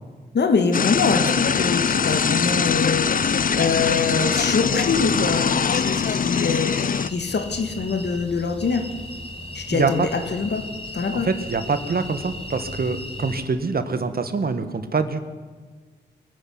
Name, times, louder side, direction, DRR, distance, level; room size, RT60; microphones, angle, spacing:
voice 1, 0.3-3.2 3.5-8.9 9.5-10.7 10.9-11.3, left 5 dB, 65° left, 8 dB, 2.4 m, -24 dB
sound 1, 0.7-7.1, left 6 dB, 50° left, 0.7 m, -22 dB
sound 2, 0.8-6.3, right 1 dB, 10° right, 4.4 m, -43 dB
sound 3, 0.9-13.4, left 1 dB, 30° left, 4.9 m, -37 dB
voice 2, 9.7-10.1 11.1-15.2, right 4 dB, 55° right, 10 dB, 2.0 m, -25 dB
22.5 x 12.0 x 9.8 m, 1.4 s
cardioid pair, 55°, 19 cm